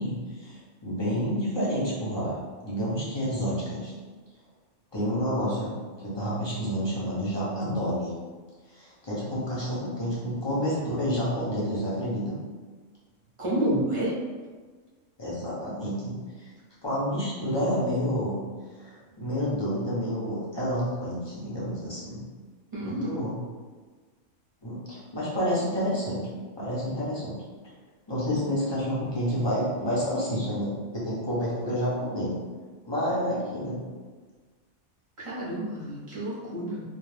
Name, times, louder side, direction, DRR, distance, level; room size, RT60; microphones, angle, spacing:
voice 1, 0.0-3.9 4.9-8.1 8.7-12.4 15.2-16.2 16.8-18.4 18.8-22.3 22.8-23.4 24.6-26.2 26.6-27.3 28.1-32.4 32.8-33.8, equal, 30° left, -8 dB, 0.5 m, -29 dB
voice 2, 13.4-14.1 22.7-23.2 35.2-36.8, right 1 dB, 35° right, -7 dB, 0.6 m, -29 dB
2.4 x 2.1 x 3.2 m, 1.4 s
omnidirectional pair, 1.3 m